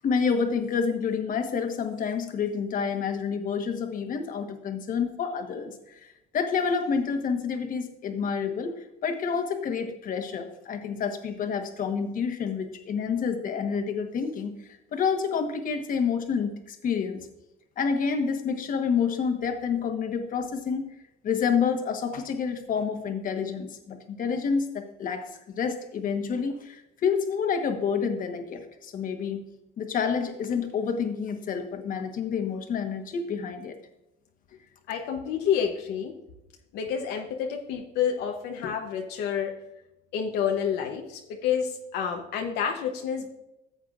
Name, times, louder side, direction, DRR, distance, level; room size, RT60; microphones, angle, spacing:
voice 1, 0.0-14.5 14.9-17.3 17.8-20.9 21.2-29.4 29.8-33.7, left 6 dB, 55° left, 5 dB, 1.3 m, -28 dB
voice 2, 34.9-36.1 36.7-39.5 40.1-43.3, left 8 dB, 85° left, 2 dB, 0.9 m, -29 dB
14.5 x 8.0 x 2.5 m, 0.89 s
cardioid pair, 110°, 17 cm